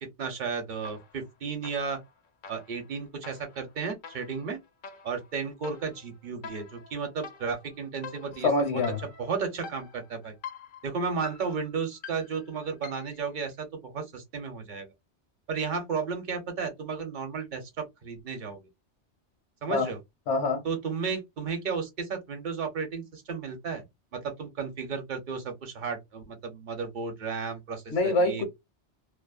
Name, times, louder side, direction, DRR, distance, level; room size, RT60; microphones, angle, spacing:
voice 1, 0.2-2.0 2.5-4.6 5.0-8.8 9.2-10.3 10.8-14.9 15.5-18.6 19.6-20.0 20.6-23.8 24.1-28.4, right 5 dB, 45° right, 0.9 m, -33 dB
sound 1, 0.8-1.3 1.6-13.2, left 5 dB, 55° left, 0.6 m, -46 dB
voice 2, 8.4-9.0 19.7-19.9 20.3-20.6 27.9-28.4, left 3 dB, 80° left, 1.1 m, -25 dB
2.6 x 2.0 x 2.3 m
omnidirectional pair, 1.2 m